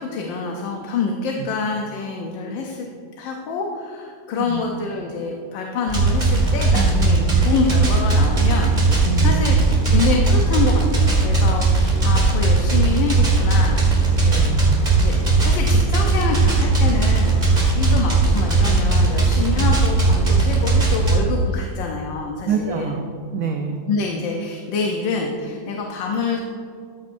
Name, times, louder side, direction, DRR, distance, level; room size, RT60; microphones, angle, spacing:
voice 1, 0.0-2.9 3.2-9.6 9.9-14.5 15.0-22.9 23.9-26.4, left 4 dB, 85° left, 1 dB, 1.5 m, -26 dB
sound 1, 5.9-21.2, right 3 dB, 25° right, 1.7 m, -18 dB
voice 2, 6.7-7.3 9.0-9.5 14.3-14.9 19.6-19.7 22.4-23.8, right 5 dB, 65° right, 4 dB, 0.9 m, -27 dB
14.0 x 8.5 x 2.6 m, 2.3 s
omnidirectional pair, 2.0 m